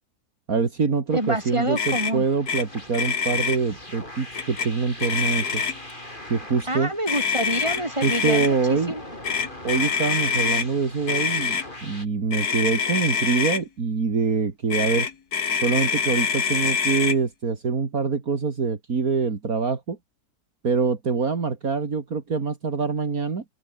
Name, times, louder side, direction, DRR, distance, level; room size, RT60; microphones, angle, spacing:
voice 1, 0.5-5.6 6.3-6.9 8.0-8.9 9.6-15.1 15.6-20.0 20.6-23.4, right 5 dB, 65° right, 2.8 m, -25 dB
sound 1, 1.1-12.1, left 1 dB, 30° left, 6.8 m, -41 dB
voice 2, 1.1-2.2 6.7-9.0, right 1 dB, 20° right, 6.6 m, -27 dB
Motor vehicle (road), 1.8-2.1 2.5-2.6 2.9-3.6 4.3-4.7 5.0-5.9 7.1-8.5 9.2-10.7 11.1-11.6 12.3-13.6 14.7-17.2, left 6 dB, 75° left, 2.4 m, -25 dB
open air
omnidirectional pair, 1.7 m